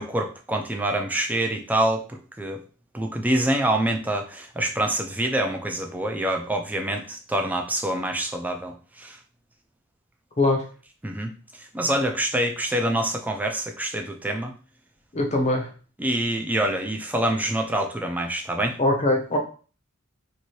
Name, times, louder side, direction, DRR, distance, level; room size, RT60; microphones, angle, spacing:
voice 1, 0.0-2.6 2.9-9.2 11.0-14.5 16.0-18.8, right 1 dB, 10° right, 3 dB, 0.3 m, -26 dB
voice 2, 15.1-15.7 18.8-19.4, left 2 dB, 35° left, 2 dB, 0.6 m, -22 dB
2.7 x 2.6 x 3.0 m, 0.37 s
head